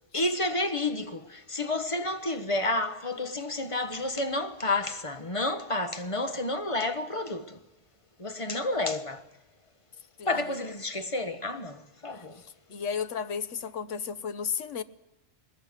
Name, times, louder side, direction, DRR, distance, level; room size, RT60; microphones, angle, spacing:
voice 1, 0.0-7.6 8.2-9.3 10.2-12.4, left 2 dB, 25° left, 1.4 m, -30 dB
voice 2, 12.7-14.8, left 6 dB, 80° left, 1.4 m, -33 dB
21.5 x 20.0 x 9.8 m
omnidirectional pair, 1.3 m